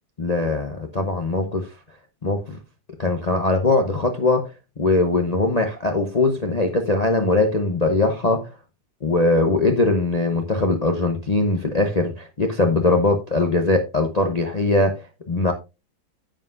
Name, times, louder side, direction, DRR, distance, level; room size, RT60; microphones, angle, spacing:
voice 1, 0.2-1.7 2.2-2.6 3.0-4.5 4.8-8.5 9.0-15.5, left 2 dB, 80° left, 0.3 m, -21 dB
10.5 x 7.6 x 2.6 m
omnidirectional pair, 2.2 m